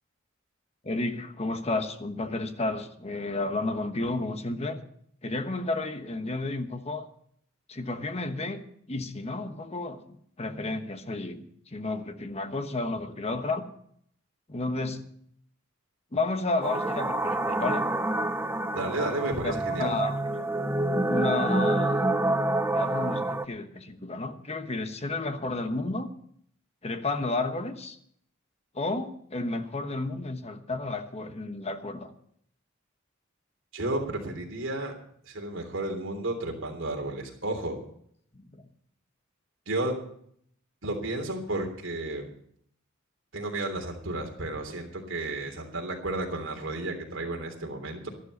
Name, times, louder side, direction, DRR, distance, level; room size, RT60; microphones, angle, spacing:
voice 1, 0.8-4.8 5.2-7.1 7.7-8.6 8.9-10.0 10.4-13.6 14.5-15.0 16.1-17.8 19.4-20.5 21.1-22.1 22.7-26.1 26.8-28.0 28.7-32.1 38.3-38.4, left 2 dB, 30° left, 8 dB, 1.1 m, -32 dB
sound 1, 16.6-23.4, right 2 dB, 10° right, 0.5 m, -27 dB
voice 2, 18.7-20.0 33.7-34.9 35.3-37.8 39.7-40.0 40.8-42.3 43.3-48.1, right 2 dB, 65° right, 2 dB, 3.3 m, -32 dB
12.5 x 12.0 x 5.4 m, 0.65 s
head